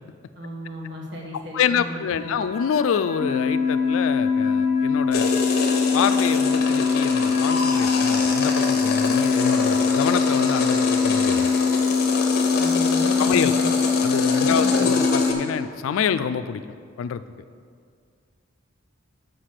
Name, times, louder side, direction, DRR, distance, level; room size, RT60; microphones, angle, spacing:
voice 1, 0.3-2.3 12.5-13.7 14.4-14.9, equal, 55° right, -2 dB, 1.3 m, -35 dB
voice 2, 1.5-5.3 5.9-11.5 13.2-13.5 14.0-16.6 17.0-17.2, left 7 dB, 80° left, 13 dB, 0.3 m, -26 dB
sound 1, 2.0-12.2, left 2 dB, 35° left, 1.1 m, -38 dB
sound 2, 3.2-15.3, left 5 dB, 20° right, 0.4 m, -22 dB
sound 3, 5.1-15.3, left 3 dB, 50° left, 0.8 m, -26 dB
6.5 x 5.2 x 5.8 m, 2.1 s
head